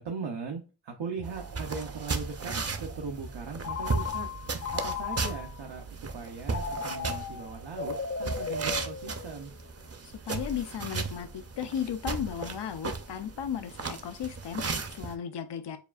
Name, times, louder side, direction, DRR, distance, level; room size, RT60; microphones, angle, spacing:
voice 1, 0.0-4.3 4.7-9.5, right 5 dB, 85° right, 0.7 m, -39 dB
sound 1, 1.2-6.6, right 4 dB, 60° right, 1.0 m, -45 dB
sound 2, 1.3-15.1, right 4 dB, 35° right, 0.6 m, -36 dB
Telephone, 3.6-5.6 6.5-9.5, left 5 dB, 40° left, 0.6 m, -36 dB
voice 2, 10.0-15.8, left 8 dB, 75° left, 0.6 m, -35 dB
6.8 x 2.4 x 2.4 m
wide cardioid pair, 55°, 42 cm